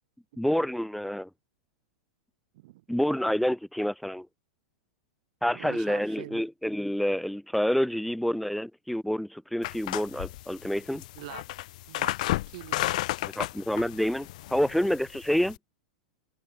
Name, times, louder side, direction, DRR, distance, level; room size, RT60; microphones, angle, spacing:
voice 1, 0.4-1.3 2.9-4.3 5.4-11.0 13.2-15.6, equal, ahead, 1.3 m, -28 dB
voice 2, 5.5-6.4 11.1-11.4 11.9-13.0, right 18 dB, 50° right, 3.2 m, -44 dB
sound 1, 9.6-15.6, left 17 dB, 50° left, 2.2 m, -33 dB
supercardioid pair, 170°, 5 cm